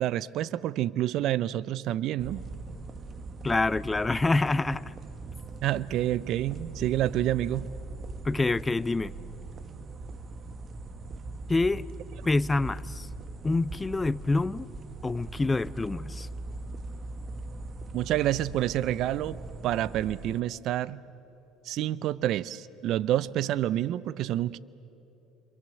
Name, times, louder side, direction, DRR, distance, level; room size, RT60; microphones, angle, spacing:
voice 1, 0.0-2.4 5.6-7.7 17.9-19.4 19.6-21.0 21.6-24.6, right 13 dB, 65° right, 0.5 m, -28 dB
sound 1, 2.2-20.4, right 3 dB, 35° right, 1.3 m, -41 dB
voice 2, 3.4-4.9 8.2-9.1 11.5-11.9 12.3-13.1 13.4-14.7 15.0-16.3, left 3 dB, 15° left, 0.5 m, -26 dB
28.0 x 25.5 x 7.7 m
supercardioid pair, 85°, 0 cm